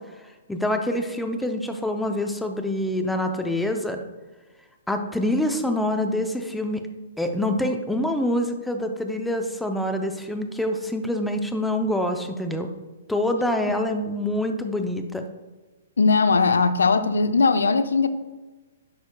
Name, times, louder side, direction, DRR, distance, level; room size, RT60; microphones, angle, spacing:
voice 1, 0.5-4.0 4.9-6.8 7.2-12.7 13.1-15.2, left 1 dB, 5° left, 5 dB, 0.6 m, -26 dB
voice 2, 16.0-18.1, left 4 dB, 80° left, 11 dB, 0.5 m, -19 dB
9.3 x 6.4 x 2.3 m, 1.2 s
hypercardioid pair, 125°, 0 cm